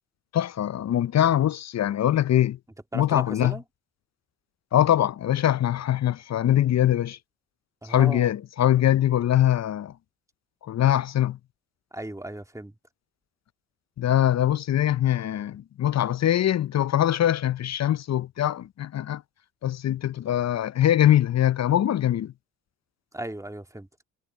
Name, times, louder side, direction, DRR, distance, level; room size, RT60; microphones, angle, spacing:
voice 1, 0.3-2.6 2.9-3.6 4.7-7.2 7.9-9.9 10.6-11.4 14.0-19.2 19.6-22.3, left 11 dB, 40° left, 0.7 m, -22 dB
voice 2, 2.9-3.6 7.8-8.3 11.9-12.7 23.1-23.9, right 1 dB, 10° right, 2.1 m, -36 dB
hypercardioid pair, 55°, 40 cm